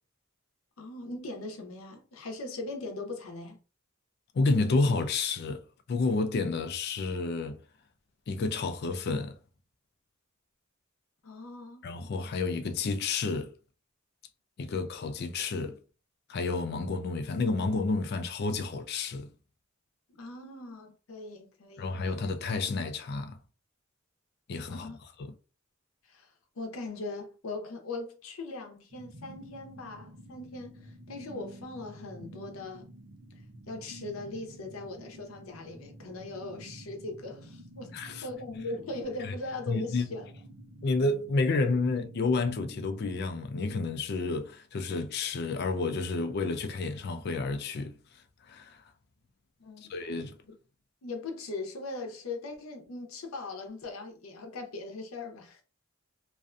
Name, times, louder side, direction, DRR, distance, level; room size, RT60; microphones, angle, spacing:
voice 1, 0.8-3.6 11.2-11.9 20.1-21.9 24.7-25.0 26.1-32.9 33.7-40.3 49.6-49.9 50.5-50.6 51.0-55.6, left 2 dB, 90° left, 0.6 m, -40 dB
voice 2, 4.3-5.6 5.9-7.6 8.3-9.4 11.8-13.5 14.6-15.8 16.3-19.3 21.8-23.4 24.5-24.9 25.2-25.3 37.9-38.3 39.2-39.4 39.7-40.1 40.8-47.9 48.5-48.8 49.9-50.3, left 3 dB, 50° left, 0.3 m, -30 dB
sound 1, 28.9-43.2, right 1 dB, 80° right, 0.6 m, -49 dB
2.5 x 2.2 x 2.4 m
head